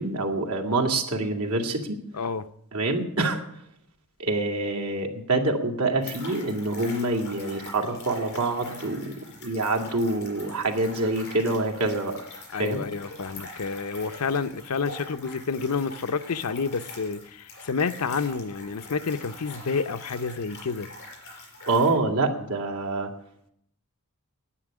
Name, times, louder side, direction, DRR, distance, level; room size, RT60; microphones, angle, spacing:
voice 1, 0.0-2.0 2.7-3.4 4.2-9.1 9.4-12.2 12.6-12.8 21.7-23.1, right 2 dB, 80° right, 2.2 m, -26 dB
voice 2, 2.1-2.5 12.5-20.9, left 5 dB, 85° left, 0.7 m, -29 dB
sound 1, 6.0-21.9, left 2 dB, 50° left, 5.4 m, -44 dB
9.9 x 9.1 x 10.0 m
head